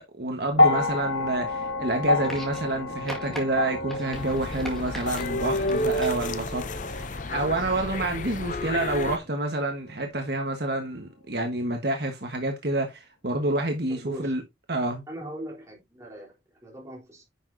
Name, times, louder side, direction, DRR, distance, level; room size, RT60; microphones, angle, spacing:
voice 1, 0.0-14.4 14.7-15.0, right 2 dB, 55° right, 1.4 m, -28 dB
sound 1, 0.5-8.9 9.9-10.0, left 2 dB, 70° left, 1.8 m, -29 dB
sound 2, 2.2-2.8 3.1-3.4 3.9-5.2 5.7-6.3 7.4-7.5, equal, ahead, 1.9 m, -40 dB
sound 3, 4.1-9.2, left 1 dB, 40° left, 0.6 m, -31 dB
voice 2, 13.9-14.3 15.1-17.2, right 1 dB, 15° right, 3.7 m, -40 dB
9.9 x 6.2 x 2.7 m
head